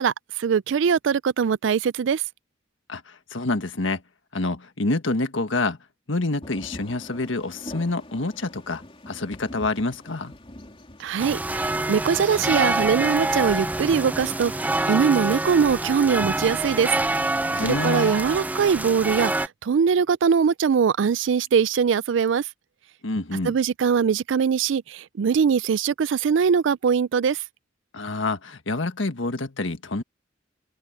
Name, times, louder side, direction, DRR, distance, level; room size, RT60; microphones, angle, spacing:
voice 1, 0.0-2.2 11.0-16.9 17.6-22.5 23.4-27.4, right 6 dB, 70° right, 0.4 m, -22 dB
voice 2, 2.9-4.0 4.3-5.8 6.1-10.3 17.5-18.2 23.0-23.6 27.9-30.0, left 2 dB, 80° left, 1.6 m, -27 dB
sound 1, 6.4-16.0, left 1 dB, 30° left, 3.3 m, -45 dB
sound 2, 11.2-19.5, right 2 dB, 10° right, 0.4 m, -26 dB
open air
head